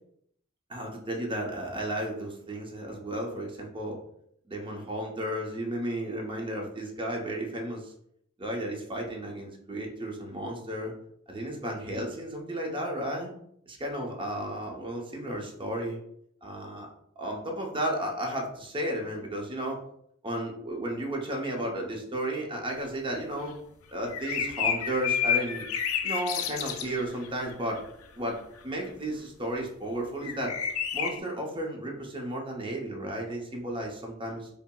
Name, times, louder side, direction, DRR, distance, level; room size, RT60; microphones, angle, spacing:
voice 1, 0.7-4.0 4.5-7.9 8.4-10.9 11.3-13.3 13.7-16.0 16.4-16.9 17.2-19.8 20.2-23.5 23.9-25.7 26.0-27.8 28.2-30.6 30.9-34.5, right 1 dB, 25° right, 1 dB, 0.7 m, -33 dB
sound 1, 24.1-27.3 30.2-31.2, left 8 dB, 85° left, 0.4 m, -29 dB
5.4 x 2.0 x 2.2 m, 0.71 s
head